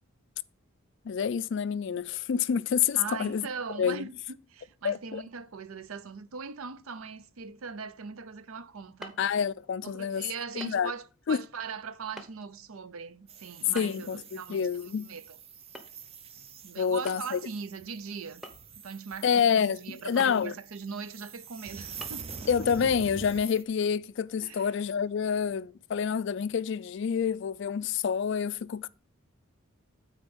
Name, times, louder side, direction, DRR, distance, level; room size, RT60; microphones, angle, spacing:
voice 1, 1.0-3.4 3.8-4.1 4.8-5.2 9.2-10.3 10.6-10.9 11.3-11.4 13.7-15.1 16.8-17.4 19.2-20.5 22.5-28.9, left 7 dB, 55° left, 0.3 m, -28 dB
voice 2, 3.0-9.2 9.8-14.7 15.0-15.4 16.6-18.4 18.8-19.4 19.8-22.3 24.4-24.7, right 5 dB, 75° right, 0.6 m, -40 dB
sound 1, 9.0-9.3 10.6-10.8 11.1-11.2 12.2-12.3 13.8-14.1 15.7-16.0 16.3-16.4 17.1-17.4 18.4-18.9 20.2-20.4 21.0-21.1 22.0-22.1, equal, ahead, 0.8 m, -44 dB
sound 2, 13.3-23.6, right 5 dB, 25° right, 0.4 m, -46 dB
9.0 x 4.3 x 5.3 m
head